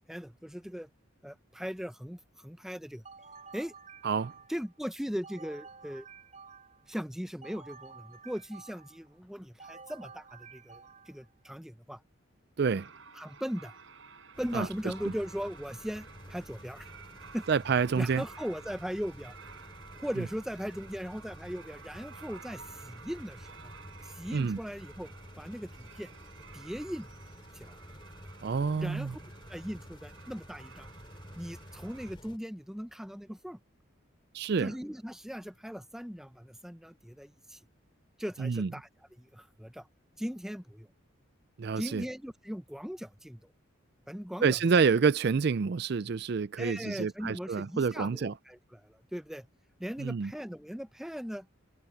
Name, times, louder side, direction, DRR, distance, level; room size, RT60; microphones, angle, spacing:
voice 1, 0.1-0.9 1.2-3.0 3.5-3.7 4.5-6.1 6.9-12.0 13.1-13.8 14.4-16.9 17.3-17.4 18.0-19.4 20.0-23.7 24.0-25.1 25.4-26.1 26.5-27.1 27.5-27.8 28.8-29.2 29.5-30.9 31.3-33.6 34.6-37.6 38.2-38.9 39.2-39.9 40.2-40.9 41.8-43.4 44.1-44.6 46.6-49.5 49.8-51.5, equal, ahead, 0.7 m, -39 dB
sound 1, 3.0-4.7 5.2-6.9 7.4-9.1 9.6-11.3, right 5 dB, 35° right, 3.8 m, -51 dB
voice 2, 12.6-12.9 14.5-14.7 17.5-18.2 24.3-24.6 28.4-29.1 34.3-34.7 38.4-38.7 41.6-42.0 44.4-48.3 50.0-50.3, right 5 dB, 50° right, 0.4 m, -28 dB
sound 2, 12.7-32.1, right 5 dB, 70° right, 4.7 m, -53 dB
sound 3, 14.3-32.4, equal, 25° left, 3.3 m, -51 dB
head